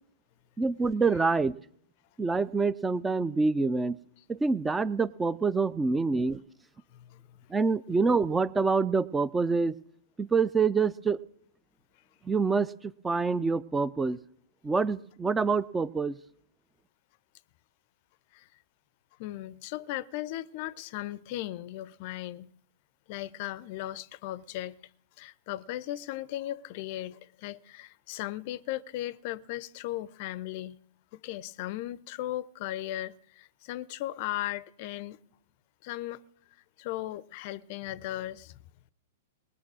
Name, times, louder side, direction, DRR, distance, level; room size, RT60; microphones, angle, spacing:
voice 1, 0.6-1.6 2.2-4.0 4.3-6.4 7.5-9.8 10.2-11.2 12.2-14.2 14.6-16.2, right 4 dB, 10° right, 0.4 m, -26 dB
voice 2, 6.9-7.2 18.3-18.5 19.2-22.5 23.1-24.8 25.2-30.8 31.1-35.2 35.8-36.2 36.8-38.6, left 15 dB, 50° left, 0.5 m, -37 dB
19.5 x 6.7 x 6.2 m
figure-of-eight pair, 105°, 0 cm